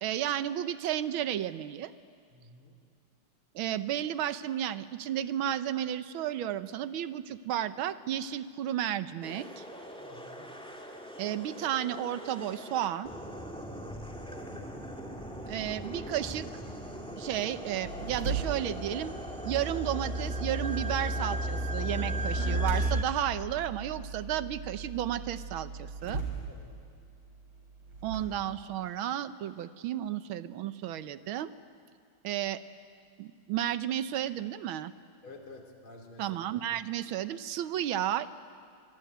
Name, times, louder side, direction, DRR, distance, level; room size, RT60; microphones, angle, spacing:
voice 1, 0.0-1.9 3.5-9.6 11.2-13.1 15.5-16.5 17.2-19.1 19.4-26.2 28.0-31.5 32.2-32.6 33.2-34.9 36.2-38.3, right 11 dB, 75° right, 13 dB, 1.6 m, -33 dB
voice 2, 2.3-2.8 10.0-10.5 14.2-14.7 26.5-26.9 35.2-36.3, left 2 dB, 80° left, 2 dB, 3.9 m, -50 dB
sound 1, 9.2-23.0, equal, ahead, 2.2 m, -42 dB
sound 2, 17.8-28.2, right 4 dB, 55° right, 5.0 m, -41 dB
sound 3, 18.6-23.0, right 1 dB, 20° right, 1.1 m, -32 dB
24.0 x 24.0 x 9.4 m, 2.3 s
omnidirectional pair, 2.3 m